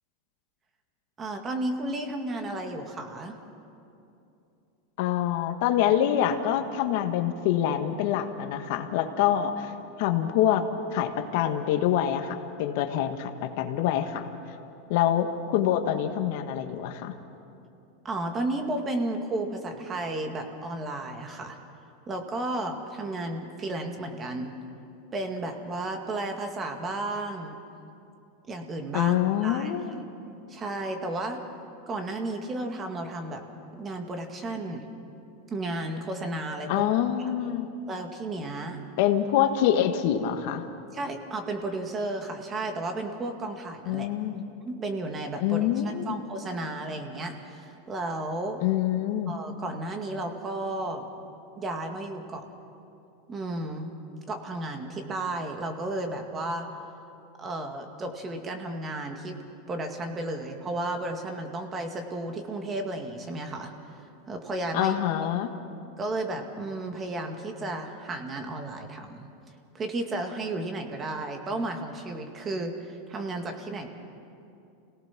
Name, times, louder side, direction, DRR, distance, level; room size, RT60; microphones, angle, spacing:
voice 1, 1.2-3.4 18.0-21.6 22.1-24.5 25.1-27.5 28.5-29.2 29.4-29.7 30.5-31.4 31.9-33.4 33.7-34.8 35.5-36.9 37.2-37.3 37.9-38.8 40.9-44.1 44.6-48.6 49.3-51.1 51.6-52.4 53.3-53.9 54.3-56.7 57.4-59.4 59.7-63.7 64.3-65.3 66.0-69.3 69.7-73.9, right 2 dB, 25° right, 4 dB, 2.0 m, -33 dB
voice 2, 5.0-9.7 10.0-10.6 10.9-14.3 14.9-17.2 28.9-30.0 36.7-37.7 39.0-40.7 43.9-44.4 45.4-46.2 48.6-49.4 64.7-65.5, left 10 dB, 60° left, 6 dB, 1.5 m, -25 dB
27.5 x 18.0 x 6.1 m, 2.7 s
supercardioid pair, 135°, 0 cm